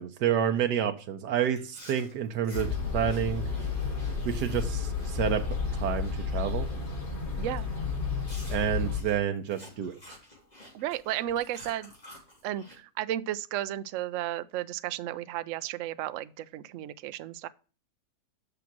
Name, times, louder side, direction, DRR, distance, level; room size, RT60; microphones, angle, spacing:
voice 1, 0.0-3.4 4.2-5.4 5.7-6.7 8.5-9.9, right 8 dB, 85° right, 1.4 m, -29 dB
Chewing mastication, 1.5-6.4 6.7-7.0 7.5-7.7 8.2-12.8, left 1 dB, 25° left, 3.3 m, -51 dB
sound 1, 2.5-9.0, left 5 dB, 75° left, 4.3 m, -32 dB
voice 2, 7.4-7.7 10.7-11.9 12.4-17.5, right 13 dB, 70° right, 0.7 m, -33 dB
6.8 x 5.9 x 6.0 m
omnidirectional pair, 1.7 m